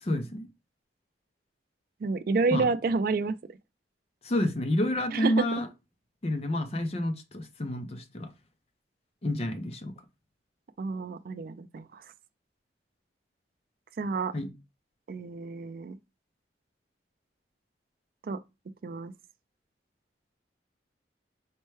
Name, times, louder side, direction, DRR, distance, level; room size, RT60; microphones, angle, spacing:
voice 1, 0.0-0.5 2.5-2.7 4.2-5.7 6.2-8.3 9.2-9.9 14.3-14.5, left 1 dB, 35° left, 0.5 m, -29 dB
voice 2, 2.0-3.4 5.1-5.6 10.8-12.0 14.0-14.3 15.1-16.0 18.2-18.4 18.8-19.1, right 4 dB, 50° right, 0.3 m, -29 dB
4.4 x 2.1 x 3.1 m
head